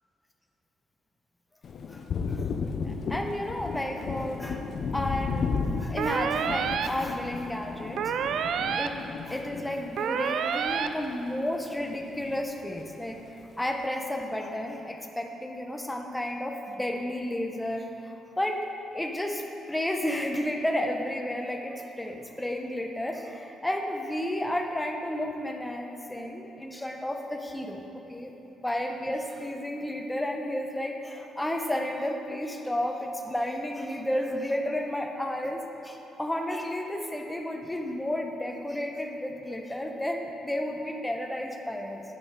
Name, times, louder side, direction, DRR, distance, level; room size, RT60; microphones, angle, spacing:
Thunder, 1.6-11.4 11.7-12.9, left 5 dB, 55° left, 0.5 m, -34 dB
voice 1, 2.8-4.7 4.9-8.0 8.8-9.0 9.3-13.2 13.6-42.0, left 1 dB, 10° left, 3 dB, 0.8 m, -32 dB
sound 1, 6.0-6.9 8.0-8.9 10.0-10.9, right 7 dB, 70° right, 0.3 m, -28 dB
9.8 x 5.4 x 4.8 m, 3.0 s
cardioid pair, 90°, 0 cm